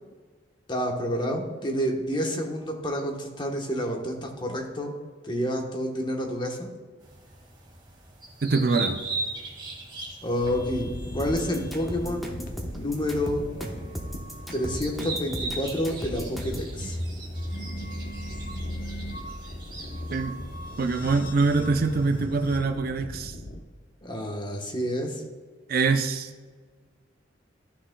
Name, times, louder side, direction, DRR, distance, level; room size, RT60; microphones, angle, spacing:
voice 1, 0.7-5.0 5.2-6.7 10.2-12.4 12.7-13.4 14.5-17.0 24.0-25.2, equal, 25° left, 1 dB, 1.1 m, -29 dB
sound 1, 7.0-22.2, right 3 dB, 25° right, 1.9 m, -40 dB
voice 2, 8.4-9.0 20.1-20.3 20.8-23.4 25.7-26.3, right 3 dB, 55° right, 8 dB, 0.5 m, -24 dB
sound 2, 10.4-23.6, equal, 50° left, 0.8 m, -37 dB
sound 3, 11.2-16.7, equal, ahead, 0.9 m, -36 dB
12.5 x 6.2 x 2.2 m, 1.4 s
head